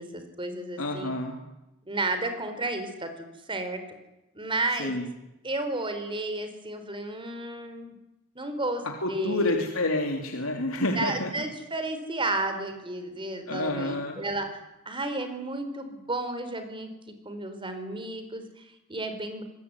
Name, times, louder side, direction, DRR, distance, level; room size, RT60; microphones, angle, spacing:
voice 1, 0.0-1.1 1.9-3.8 4.3-4.9 5.4-7.9 8.3-8.8 9.1-9.5 10.9-16.9 17.2-19.4, right 2 dB, 25° right, 8 dB, 4.5 m, -32 dB
voice 2, 0.8-1.4 4.8-5.1 8.8-11.3 13.5-14.2, left 1 dB, 80° left, 3 dB, 3.3 m, -29 dB
26.5 x 20.5 x 9.9 m, 0.94 s
head